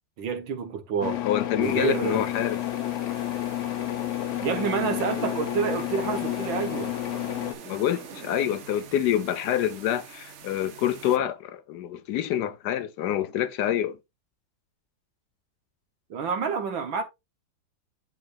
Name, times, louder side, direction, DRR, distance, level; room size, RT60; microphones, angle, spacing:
voice 1, 0.2-1.2 1.5-2.2 4.4-7.0 16.1-17.0, right 6 dB, 85° right, 1.9 m, -28 dB
sound 1, 1.0-7.5, left 13 dB, 85° left, 0.6 m, -30 dB
voice 2, 1.2-2.6 7.6-14.0, left 10 dB, 70° left, 1.1 m, -27 dB
sound 2, 1.6-11.2, right 7 dB, 55° right, 0.9 m, -45 dB
9.5 x 5.1 x 2.5 m
omnidirectional pair, 2.0 m